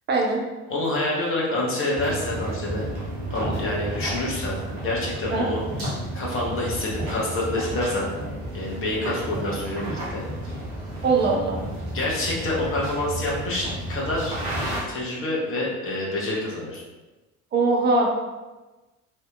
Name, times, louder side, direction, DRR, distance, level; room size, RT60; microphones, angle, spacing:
voice 1, 0.1-0.4 5.3-5.4 11.0-11.6 17.5-18.1, right 3 dB, 25° right, -1 dB, 0.5 m, -21 dB
voice 2, 0.7-2.9 3.3-5.6 6.1-8.1 8.5-10.2 11.9-14.3 14.9-16.8, left 1 dB, 30° left, -4 dB, 0.8 m, -27 dB
sound 1, 2.0-14.8, right 1 dB, 85° right, 0.7 m, -32 dB
2.7 x 2.0 x 2.2 m, 1.2 s
figure-of-eight pair, 55°, 41 cm